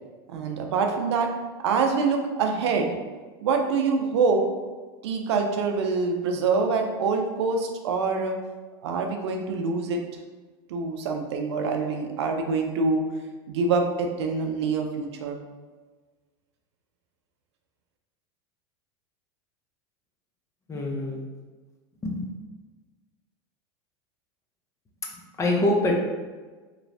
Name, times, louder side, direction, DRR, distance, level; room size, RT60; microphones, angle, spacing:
voice 1, 0.3-1.3 1.6-2.9 3.4-4.4 5.0-8.4 8.8-10.0 10.7-13.0 13.5-15.4, right 4 dB, 90° right, 3 dB, 0.4 m, -25 dB
voice 2, 20.7-21.2 22.0-22.2 25.4-26.0, left 1 dB, 20° left, 0 dB, 0.5 m, -24 dB
3.0 x 2.0 x 2.6 m, 1.3 s
supercardioid pair, 110°, 14 cm